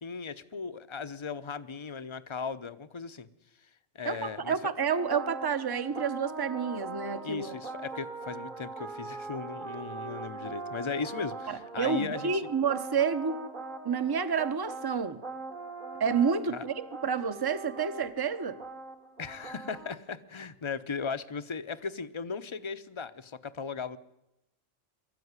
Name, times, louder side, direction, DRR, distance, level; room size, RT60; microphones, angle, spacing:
voice 1, 0.0-3.3 3.6-3.7 3.9-4.6 7.2-12.4 16.5-16.7 19.2-24.0, left 5 dB, 30° left, 0.7 m, -37 dB
voice 2, 4.0-7.6 11.5-13.4 13.8-15.2 16.0-18.6, right 6 dB, 20° right, 0.8 m, -29 dB
sound 1, 5.0-20.0, right 3 dB, 40° right, 1.4 m, -41 dB
22.5 x 13.5 x 9.6 m
omnidirectional pair, 1.3 m